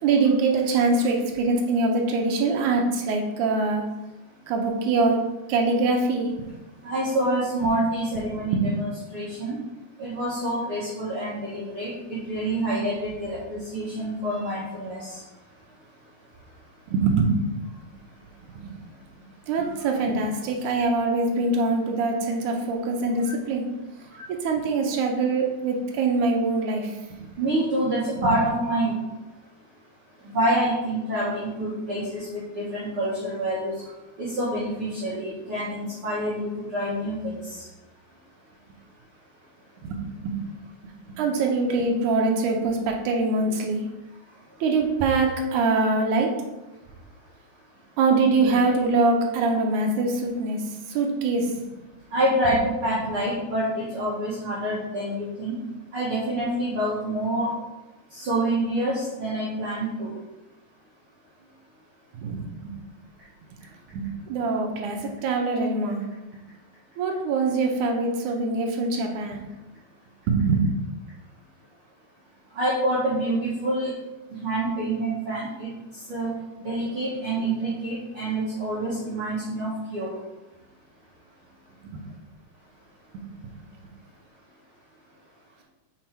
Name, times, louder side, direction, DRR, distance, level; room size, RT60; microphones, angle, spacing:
voice 1, 0.0-3.9 4.5-6.3 8.3-8.7 16.9-17.3 17.6-17.7 18.5-18.8 19.5-23.7 24.4-27.2 28.2-28.3 39.8-40.4 41.2-43.9 44.6-46.4 48.0-50.6 50.9-51.6 62.1-62.7 63.9-66.0 67.0-69.5 70.3-70.6 81.8-82.0 83.1-83.5, right 3 dB, 75° right, 2 dB, 2.2 m, -24 dB
voice 2, 6.8-9.6 10.0-15.2 19.8-19.9 27.4-29.0 30.2-33.7 34.2-37.6 52.1-55.6 55.9-57.5 58.1-60.1 72.5-73.9 74.4-76.3 76.6-80.1, right 1 dB, 50° right, -8 dB, 1.9 m, -27 dB
5.8 x 4.7 x 4.4 m, 1.0 s
omnidirectional pair, 3.7 m